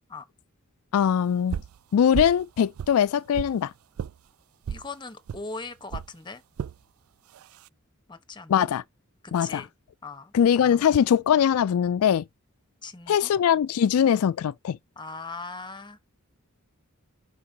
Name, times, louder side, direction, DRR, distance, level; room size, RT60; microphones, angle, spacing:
voice 1, 0.9-1.6 1.9-3.7 8.5-8.8 9.3-9.7 10.3-12.2 13.1-14.8, left 8 dB, 85° left, 0.3 m, -21 dB
sound 1, 1.5-1.8 2.1-2.4 2.8-3.6 4.0-4.1 4.6-4.9 5.3-5.4 5.9-6.1 6.6-6.8 7.3-7.7, right 7 dB, 75° right, 0.3 m, -33 dB
voice 2, 4.7-6.4 8.1-8.7 9.2-9.7 10.0-10.3 12.8-13.3 15.0-16.0, left 3 dB, 20° left, 1.2 m, -39 dB
11.0 x 4.6 x 2.9 m
head